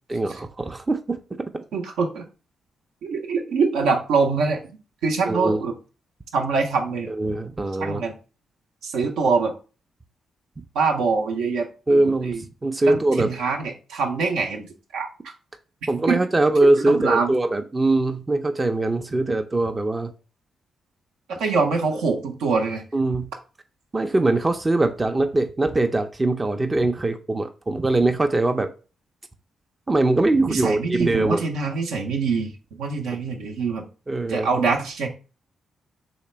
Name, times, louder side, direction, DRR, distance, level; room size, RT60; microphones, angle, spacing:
voice 1, 0.1-1.6 5.3-5.6 7.2-8.0 11.9-13.3 15.9-20.1 22.9-23.3 23.9-28.7 29.9-31.4 34.1-34.5, right 2 dB, 30° right, 6 dB, 0.5 m, -22 dB
voice 2, 1.7-2.2 3.0-5.7 6.3-7.1 7.8-8.1 8.8-9.5 10.7-12.4 12.9-15.1 16.1-16.2 16.6-17.3 21.3-22.8 30.4-33.8 34.3-35.1, right 4 dB, 75° right, 2 dB, 0.6 m, -24 dB
3.3 x 2.9 x 4.2 m, 0.34 s
hypercardioid pair, 40°, 0 cm